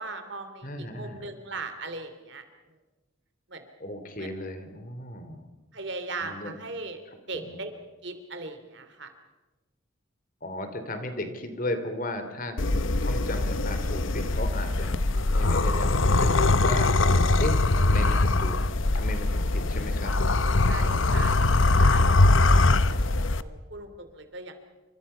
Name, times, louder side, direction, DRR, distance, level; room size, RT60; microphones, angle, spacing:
voice 1, 0.0-0.7 1.0-2.4 3.5-3.7 4.2-4.3 5.7-7.0 7.3-7.7 8.0-9.1 20.6-22.2 22.4-22.8 23.4-24.6, right 3 dB, 55° right, 8 dB, 2.9 m, -38 dB
voice 2, 0.6-1.3 3.8-5.4 6.2-6.5 7.3-7.6 10.4-16.9 17.4-17.5 17.8-18.6 18.9-20.2 20.4-21.2, left 1 dB, 40° left, 8 dB, 2.9 m, -35 dB
sound 1, 12.6-23.4, left 2 dB, 65° left, 0.9 m, -22 dB
29.0 x 26.0 x 5.7 m, 1.2 s
head